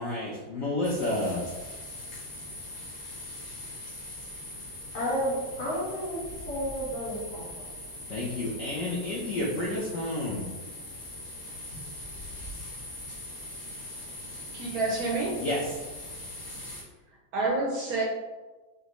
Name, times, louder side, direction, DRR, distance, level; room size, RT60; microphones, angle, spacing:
voice 1, 0.0-1.4 8.1-10.5 15.4-15.6, left 1 dB, 75° left, -4 dB, 0.7 m, -30 dB
sound 1, 0.8-16.8, left 1 dB, 45° left, 1.4 m, -41 dB
voice 2, 4.9-6.2 6.5-7.6, equal, 90° left, -8 dB, 2.2 m, -31 dB
voice 3, 14.5-15.4 17.3-18.0, right 3 dB, 75° right, -1 dB, 0.8 m, -28 dB
5.0 x 2.6 x 3.0 m, 1.2 s
omnidirectional pair, 2.1 m